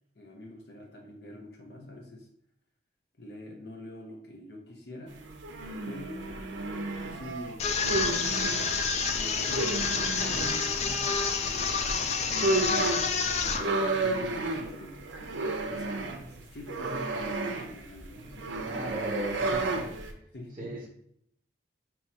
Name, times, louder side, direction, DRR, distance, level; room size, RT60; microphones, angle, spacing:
voice 1, 0.1-2.3 3.2-5.2 5.8-12.9 13.8-19.3 20.3-20.8, left 1 dB, 60° left, 0 dB, 0.7 m, -45 dB
sound 1, 5.1-8.7 9.4-10.5 11.9-12.0 12.2-20.1, right 2 dB, 85° right, 0.6 m, -32 dB
sound 2, 7.6-13.6, left 5 dB, 35° left, 0.3 m, -28 dB
voice 2, 13.4-13.9 18.6-20.0 20.6-20.9, right 1 dB, 25° right, -2 dB, 0.6 m, -37 dB
5.6 x 2.8 x 2.8 m, 0.71 s
head